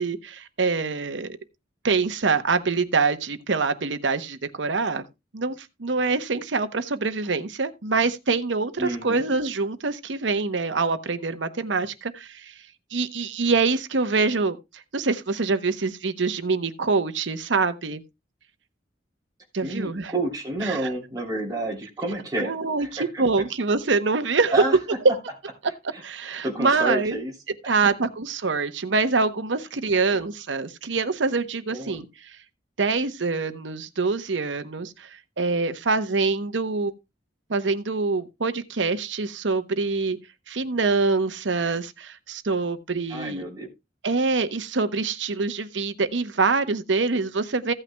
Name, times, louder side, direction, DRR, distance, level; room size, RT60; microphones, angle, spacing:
voice 1, 0.0-1.4 1.8-5.0 5.3-12.5 12.9-18.0 19.5-20.1 20.6-20.8 22.4-24.8 26.0-27.2 27.7-32.4 32.8-35.1 35.4-36.9 37.5-40.2 40.5-43.5 44.0-47.7, right 4 dB, 80° right, 0.9 m, -25 dB
voice 2, 8.8-9.2 19.6-22.5 22.8-23.2 24.5-24.8 25.9-27.3 31.7-32.0 43.1-43.7, right 2 dB, 20° right, 3.0 m, -29 dB
15.5 x 8.9 x 2.2 m
head